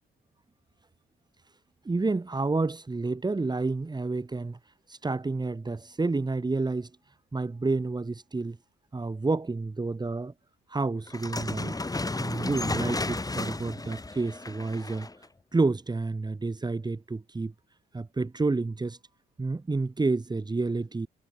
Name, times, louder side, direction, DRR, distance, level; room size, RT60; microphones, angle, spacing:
voice 1, 1.8-4.6 4.9-6.9 7.3-8.6 8.9-10.3 10.7-11.8 12.2-15.1 15.5-17.5 17.9-19.0 19.4-21.1, right 3 dB, 20° right, 2.9 m, -29 dB
sound 1, 11.1-15.2, left 2 dB, 20° left, 7.0 m, -33 dB
cardioid pair, 90°, 20 cm